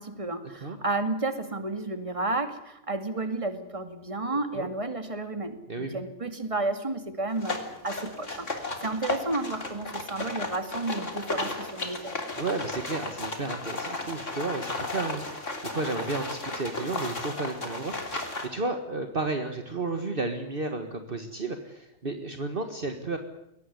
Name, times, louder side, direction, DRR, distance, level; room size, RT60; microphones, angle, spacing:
voice 1, 0.0-12.1, right 2 dB, 25° right, 8 dB, 2.4 m, -32 dB
voice 2, 4.3-4.7 5.7-6.0 12.4-23.2, right 3 dB, 45° right, 6 dB, 1.8 m, -33 dB
sound 1, 7.4-18.5, left 2 dB, 65° left, 3.7 m, -34 dB
22.0 x 18.5 x 9.7 m, 0.86 s
omnidirectional pair, 1.3 m